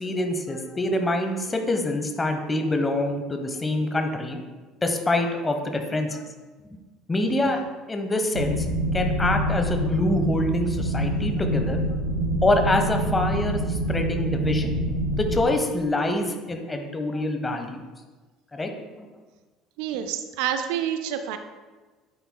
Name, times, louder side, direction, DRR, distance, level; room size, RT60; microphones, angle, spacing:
voice 1, 0.0-4.4 4.8-6.2 7.1-7.6 7.9-8.7 8.9-11.8 12.4-14.8 15.2-17.9 18.5-18.7 19.0-19.1, left 1 dB, 20° left, 5 dB, 1.0 m, -25 dB
sound 1, 8.3-15.4, right 1 dB, 80° right, 1.3 m, -26 dB
voice 2, 19.8-21.4, right 9 dB, 60° right, 9 dB, 0.4 m, -28 dB
9.2 x 8.1 x 2.3 m, 1.3 s
figure-of-eight pair, 60°, 0 cm